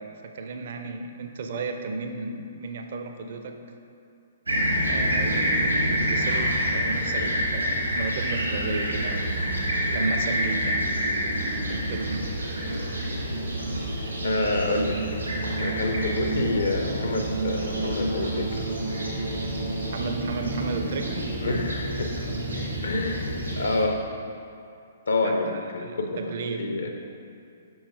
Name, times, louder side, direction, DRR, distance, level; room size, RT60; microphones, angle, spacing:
voice 1, 0.0-3.6 4.9-9.4 9.9-10.9 11.6-12.3 13.2-13.3 19.9-21.4 25.2-26.7, right 3 dB, 50° right, 5 dB, 0.5 m, -33 dB
Fixed-wing aircraft airplane, 4.5-23.8, right 1 dB, 80° right, 1.4 m, -27 dB
voice 2, 14.2-15.0 15.6-18.6 21.4-22.4 22.8-24.0 25.1-26.2 26.6-26.9, left 2 dB, 65° left, 3 dB, 0.5 m, -28 dB
5.6 x 4.7 x 4.0 m, 2.4 s
figure-of-eight pair, 120°, 0 cm